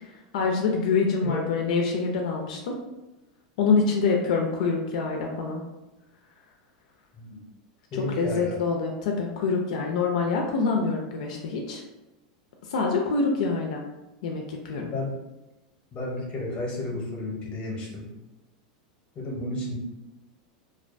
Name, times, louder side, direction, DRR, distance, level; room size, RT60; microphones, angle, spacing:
voice 1, 0.3-2.8 3.6-5.6 7.9-11.8 12.7-13.8 14.2-14.9, left 4 dB, 75° left, 1 dB, 0.3 m, -25 dB
voice 2, 7.9-8.6 14.9-15.1 15.9-18.1 19.2-19.7, left 2 dB, 25° left, -2 dB, 0.8 m, -32 dB
2.2 x 2.2 x 2.5 m, 1.0 s
supercardioid pair, 135°, 4 cm